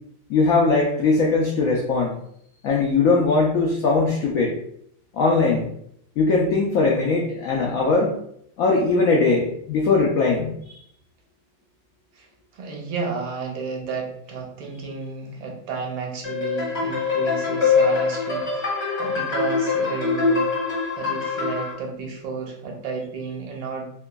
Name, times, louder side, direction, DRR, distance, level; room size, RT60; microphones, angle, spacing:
voice 1, 0.3-2.2 2.6-4.5 5.1-5.7 6.2-8.1 8.6-10.5, left 3 dB, 80° left, -1 dB, 0.7 m, -20 dB
voice 2, 12.5-18.7 19.0-20.5 21.0-23.9, right 4 dB, 85° right, 1 dB, 1.4 m, -32 dB
sound 1, 16.2-21.7, left 4 dB, 35° left, 1.9 m, -23 dB
3.5 x 2.9 x 2.2 m, 0.70 s
omnidirectional pair, 2.0 m